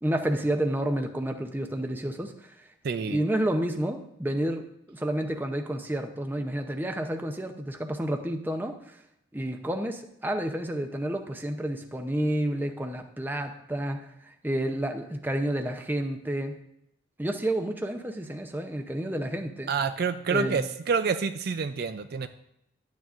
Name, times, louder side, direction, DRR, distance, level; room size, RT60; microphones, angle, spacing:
voice 1, 0.0-2.7 3.0-9.0 9.3-16.6 17.2-19.7 20.3-20.6, right 1 dB, 10° right, 5 dB, 0.6 m, -30 dB
voice 2, 2.8-3.2 19.7-22.3, right 5 dB, 50° right, 9 dB, 0.4 m, -28 dB
12.0 x 9.4 x 2.5 m, 0.81 s
head